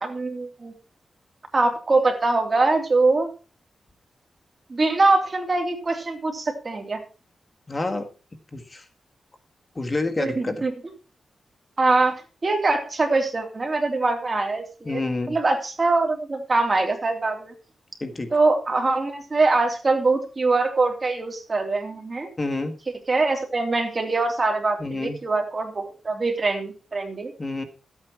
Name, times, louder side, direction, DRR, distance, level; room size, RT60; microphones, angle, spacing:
voice 1, 0.0-0.7 1.5-3.3 4.7-7.0 10.2-10.7 11.8-15.0 15.3-17.5 18.3-22.3 23.1-27.3, right 3 dB, 35° right, 4 dB, 3.1 m, -23 dB
voice 2, 7.7-8.1 8.5-8.9 9.8-10.6 14.9-15.4 18.0-18.4 22.4-22.7 24.8-25.2 27.4-27.6, left 2 dB, 25° left, 6 dB, 1.7 m, -28 dB
13.0 x 8.7 x 4.6 m, 0.34 s
wide cardioid pair, 110°, 0 cm